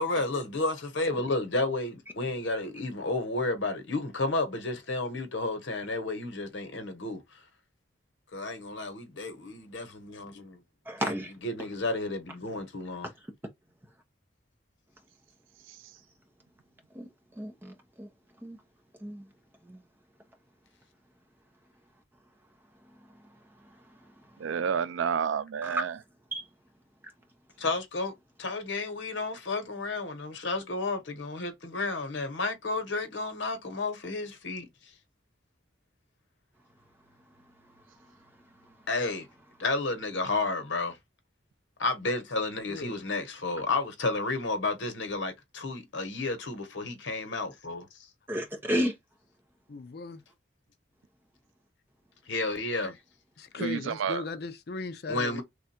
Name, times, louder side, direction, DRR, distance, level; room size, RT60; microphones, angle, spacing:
voice 1, 0.0-7.2 8.3-10.6 11.0-11.1 11.4-13.1 27.6-28.1 28.4-34.7 38.9-39.3 39.6-41.0 41.8-48.1 52.3-53.0 55.1-55.4, left 2 dB, 80° left, 1.1 m, -32 dB
voice 2, 10.9-11.3 16.9-17.1 17.4-18.1 18.4-18.6 19.0-19.3 19.6-19.8 23.8-24.1 25.6-25.9 26.3-26.4 38.7-38.8 48.3-48.9, equal, 10° right, 0.9 m, -32 dB
voice 3, 24.4-25.9 53.6-54.2, right 7 dB, 85° right, 0.4 m, -29 dB
voice 4, 49.7-50.2 53.4-55.4, left 3 dB, 55° left, 0.5 m, -37 dB
3.3 x 2.4 x 4.2 m
head